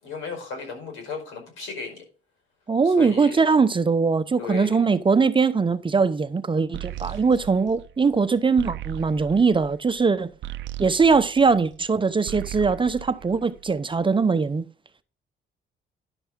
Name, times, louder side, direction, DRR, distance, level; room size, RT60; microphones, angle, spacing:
voice 1, 0.0-2.0 2.8-3.4 4.4-4.8 7.0-7.2, left 5 dB, 85° left, 5.2 m, -35 dB
voice 2, 2.7-10.3 10.8-14.7, right 4 dB, 25° right, 0.7 m, -21 dB
sound 1, 6.7-11.9 12.2-13.9, right 14 dB, 65° right, 0.5 m, -38 dB
11.0 x 6.9 x 3.7 m
cardioid pair, 90°, 20 cm